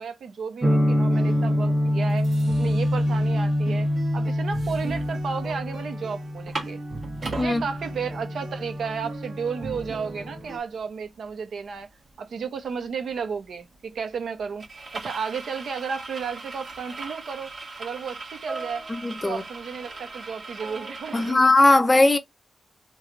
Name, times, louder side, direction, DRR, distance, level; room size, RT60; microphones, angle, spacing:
voice 1, 0.0-3.9 4.1-6.8 7.4-11.9 12.2-14.6 14.9-17.5 17.8-18.9 19.2-21.4, right 6 dB, 85° right, 0.8 m, -33 dB
sound 1, 0.6-10.4, left 1 dB, 15° right, 0.7 m, -26 dB
sound 2, 1.1-10.6, right 3 dB, 65° right, 1.1 m, -40 dB
sound 3, 3.9-4.0 4.4-5.6 5.9-6.0 6.3-7.5 8.1-8.2 8.5-21.3, right 3 dB, 45° right, 1.3 m, -39 dB
voice 2, 18.9-19.4 21.1-22.2, left 2 dB, 20° left, 0.5 m, -19 dB
3.1 x 2.3 x 3.8 m
wide cardioid pair, 180°, 0 cm